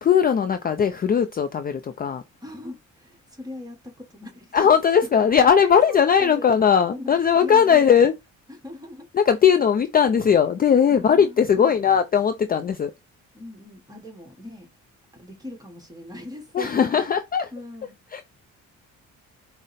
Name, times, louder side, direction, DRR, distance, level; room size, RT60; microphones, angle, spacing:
voice 1, 0.0-2.2 4.5-8.1 9.1-12.9 16.5-17.5 18.1-18.2, left 7 dB, 30° left, 0.4 m, -19 dB
voice 2, 2.4-4.7 5.1-5.3 5.6-7.1 7.4-8.1 8.5-9.1 10.9-11.8 13.3-14.7 15.1-17.0 17.5-17.9, left 1 dB, 10° right, 1.3 m, -40 dB
4.9 x 2.1 x 4.0 m
cardioid pair, 90°, 30 cm